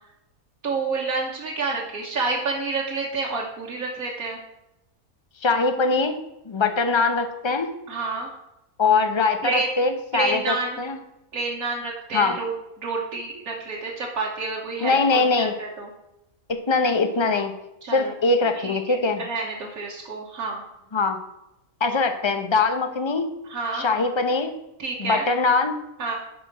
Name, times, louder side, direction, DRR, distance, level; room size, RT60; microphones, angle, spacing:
voice 1, 0.6-4.4 7.9-8.3 9.4-9.8 10.1-10.8 11.3-15.9 17.8-18.1 18.6-18.8 19.2-20.6 23.5-23.9 24.8-25.3 26.0-26.2, right 3 dB, 85° right, -4 dB, 1.7 m, -29 dB
voice 2, 5.4-6.2 6.5-7.7 8.8-11.0 12.1-12.3 14.8-15.5 16.5-17.6 17.9-19.2 20.9-21.2 21.8-23.3 23.7-24.5 25.0-25.8, left 4 dB, 25° left, 7 dB, 0.7 m, -22 dB
11.0 x 4.4 x 6.0 m, 0.88 s
omnidirectional pair, 1.5 m